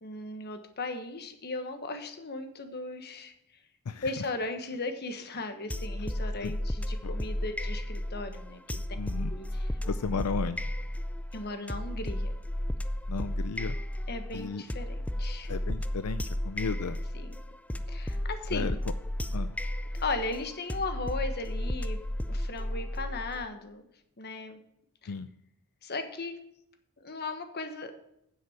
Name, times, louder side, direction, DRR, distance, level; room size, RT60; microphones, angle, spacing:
voice 1, 0.0-3.3 4.0-8.8 9.3-9.7 11.3-12.3 14.1-15.5 17.1-17.3 17.9-18.8 19.9-22.0 22.3-23.8 24.2-24.6 25.0-25.1 25.8-26.4 27.0-27.9, left 3 dB, 45° left, 8 dB, 1.3 m, -37 dB
voice 2, 3.9-4.2 6.4-6.5 7.0-7.1 9.0-9.3 9.8-10.7 13.1-13.8 14.3-14.6 15.5-17.0 18.5-18.8 19.3-19.6 25.1-25.3, left 5 dB, 80° left, 12 dB, 0.5 m, -34 dB
sound 1, 5.7-23.4, left 1 dB, 5° left, 0.4 m, -33 dB
9.4 x 7.7 x 5.7 m, 0.77 s
head